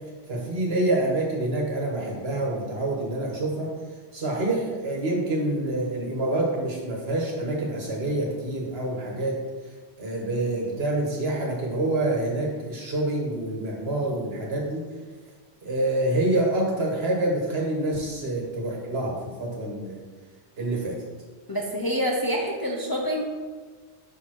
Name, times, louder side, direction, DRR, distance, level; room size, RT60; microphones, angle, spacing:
voice 1, 0.3-3.7 4.1-9.4 10.0-14.8 15.6-20.0 20.6-20.9, right 2 dB, 65° right, -1 dB, 1.5 m, -27 dB
voice 2, 21.5-23.2, equal, 30° left, -1 dB, 0.5 m, -26 dB
6.3 x 5.5 x 3.0 m, 1.4 s
omnidirectional pair, 1.1 m